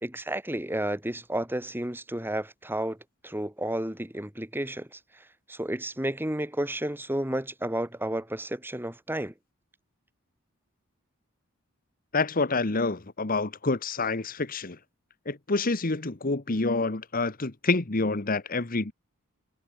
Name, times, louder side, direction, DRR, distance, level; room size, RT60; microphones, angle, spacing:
voice 1, 0.0-3.0 3.2-4.9 5.5-9.3, right 1 dB, 10° right, 2.3 m, -31 dB
voice 2, 12.1-14.8 15.3-18.9, left 3 dB, 45° left, 1.3 m, -27 dB
head